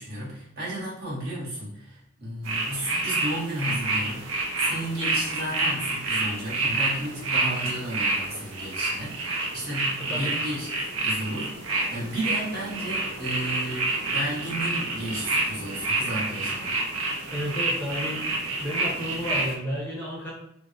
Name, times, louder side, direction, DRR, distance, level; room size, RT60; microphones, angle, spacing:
voice 1, 0.0-16.7, right 1 dB, 50° right, -6 dB, 1.1 m, -33 dB
sound 1, 2.4-19.5, right 2 dB, 90° right, 0.5 m, -28 dB
voice 2, 17.3-18.3 18.6-20.3, equal, 10° left, -5 dB, 0.6 m, -32 dB
3.5 x 2.0 x 2.5 m, 0.75 s
head